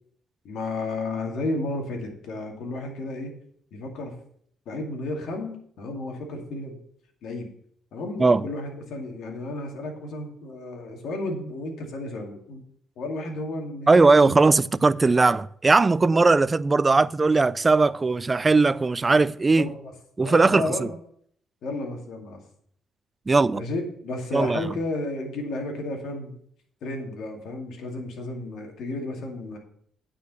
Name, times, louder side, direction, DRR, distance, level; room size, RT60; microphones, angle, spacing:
voice 1, 0.4-3.3 3.7-4.2 4.7-6.8 7.2-7.5 7.9-12.6 13.0-14.4 16.1-16.2 19.5-19.9 20.2-21.0 21.6-22.4 23.5-26.4 26.8-29.6, left 2 dB, 75° left, 2.3 m, -32 dB
voice 2, 13.9-19.7 20.2-20.9 23.3-23.6 24.3-24.6, right 3 dB, 25° right, 0.4 m, -19 dB
9.2 x 5.1 x 6.8 m
cardioid pair, 90°, 0 cm